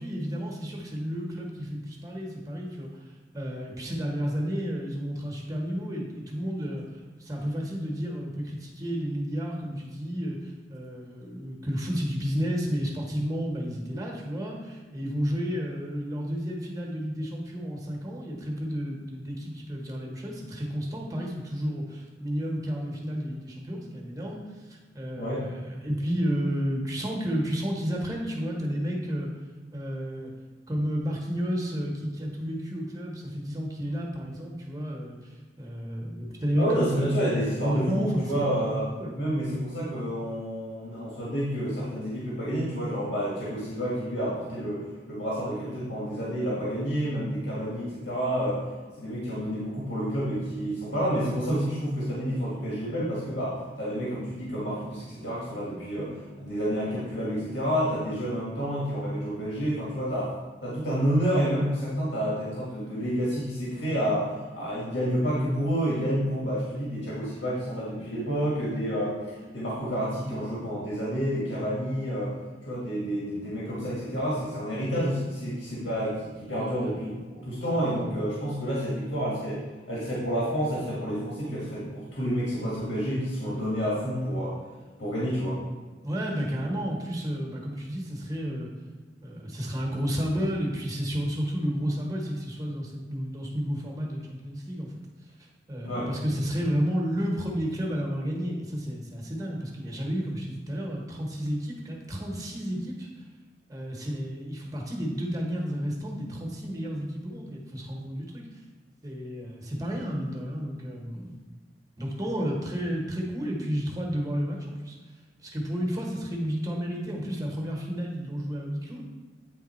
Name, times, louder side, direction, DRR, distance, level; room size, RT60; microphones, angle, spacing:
voice 1, 0.0-2.9 3.3-6.8 7.2-29.3 29.7-30.3 30.7-36.7 37.6-38.5 39.0-39.1 86.0-88.7 89.2-94.9 95.7-103.1 103.7-108.6 109.0-111.4 112.0-115.0 115.4-119.1, equal, 20° right, -1 dB, 1.2 m, -31 dB
voice 2, 25.2-25.5 36.6-38.9 39.1-48.6 49.0-60.3 60.6-72.3 72.7-79.6 79.9-84.5 85.0-85.6 95.8-96.1, equal, 80° left, -7 dB, 1.7 m, -29 dB
9.0 x 3.5 x 4.4 m, 1.4 s
head